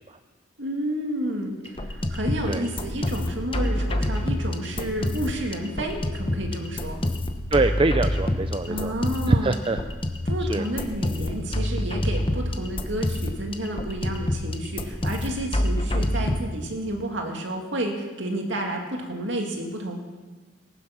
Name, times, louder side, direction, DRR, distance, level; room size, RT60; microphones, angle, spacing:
voice 1, 0.6-7.0 8.7-9.5 10.2-20.0, right 1 dB, 70° right, 2 dB, 2.4 m, -30 dB
sound 1, 1.7-16.4, left 1 dB, 25° left, 1.0 m, -27 dB
voice 2, 7.5-8.9 9.3-9.8 10.5-10.6, right 2 dB, 25° right, 8 dB, 0.5 m, -23 dB
19.5 x 9.9 x 6.0 m, 1.4 s
head